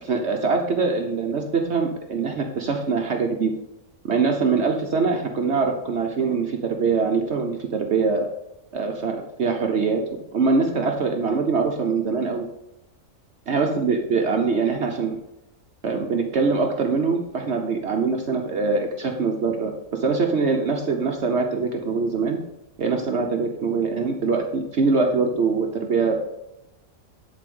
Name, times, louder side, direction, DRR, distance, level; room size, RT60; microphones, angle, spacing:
voice 1, 0.0-3.5 4.0-8.3 8.7-12.5 13.5-15.2 15.8-22.4 22.8-26.3, right 4 dB, 60° right, 2 dB, 1.1 m, -23 dB
11.0 x 4.2 x 5.4 m, 0.89 s
omnidirectional pair, 1.4 m